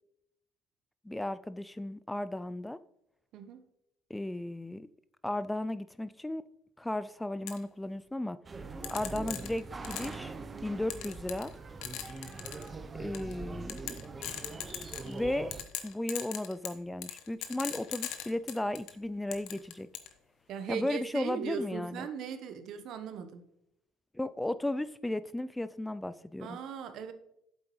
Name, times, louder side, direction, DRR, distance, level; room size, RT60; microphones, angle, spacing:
voice 1, 1.0-2.8 4.1-4.9 5.2-6.4 6.8-8.4 8.9-10.3 10.6-11.5 13.0-13.8 15.1-19.9 20.7-22.1 24.1-26.6, left 1 dB, 10° left, 14 dB, 0.3 m, -35 dB
sound 1, 7.5-7.6 8.8-10.2 10.9-11.5 11.8-12.7 13.1-13.3 13.7-15.2 15.5-18.9 19.3-20.1, left 12 dB, 70° left, 0.9 m, -39 dB
sound 2, 8.4-15.6, right 4 dB, 25° right, 0.7 m, -42 dB
voice 2, 20.5-23.4 26.4-27.1, right 7 dB, 60° right, 9 dB, 1.0 m, -39 dB
8.6 x 7.7 x 3.1 m, 0.79 s
supercardioid pair, 80°, 0 cm